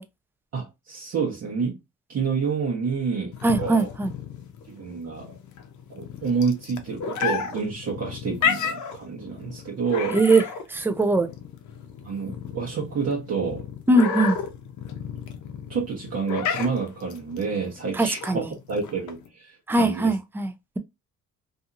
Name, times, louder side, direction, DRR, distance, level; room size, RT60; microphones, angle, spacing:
voice 1, 0.5-1.8 2.1-3.9 4.7-5.4 5.9-10.2 12.0-13.7 15.7-20.1, right 5 dB, 55° right, 0.9 m, -29 dB
sound 1, 3.3-19.3, left 7 dB, 75° left, 0.6 m, -32 dB
voice 2, 3.4-4.1 10.1-10.4 10.7-11.3 13.9-14.4 18.0-18.5 19.7-20.8, right 2 dB, 5° right, 0.4 m, -21 dB
2.7 x 2.6 x 2.4 m
cardioid pair, 90°, 30 cm